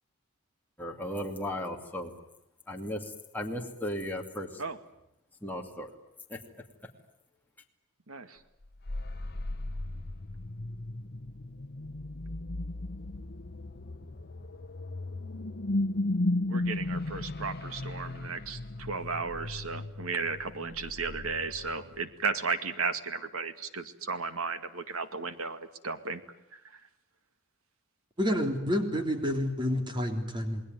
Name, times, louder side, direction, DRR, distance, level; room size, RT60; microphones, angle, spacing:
voice 1, 0.8-2.1 2.7-3.0 3.3-4.5 5.4-5.9 6.3-6.4, left 1 dB, 10° left, 0 dB, 2.6 m, -35 dB
voice 2, 8.1-8.4 16.5-26.2 26.5-26.6, right 4 dB, 80° right, 10 dB, 2.2 m, -34 dB
sound 1, 8.6-22.1, left 2 dB, 50° left, 1.1 m, -35 dB
voice 3, 28.2-30.6, equal, 20° right, 6 dB, 3.5 m, -29 dB
28.5 x 20.5 x 9.5 m, 0.84 s
head